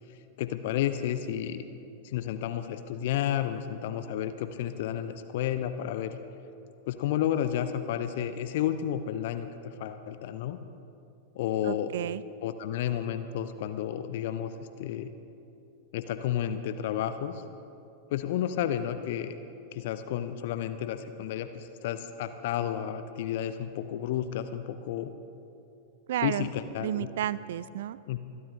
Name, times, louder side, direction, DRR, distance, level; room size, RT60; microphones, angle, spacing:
voice 1, 0.4-1.6 2.0-6.2 6.9-10.6 11.3-11.9 12.4-15.1 15.9-17.4 18.1-19.3 19.7-25.1 26.2-27.1 28.1-28.2, left 10 dB, 55° left, 10 dB, 0.6 m, -31 dB
voice 2, 11.6-12.2 26.1-26.5 26.8-28.2, right 11 dB, 60° right, 18 dB, 0.3 m, -32 dB
26.5 x 12.5 x 2.8 m, 2.7 s
figure-of-eight pair, 90°, 0 cm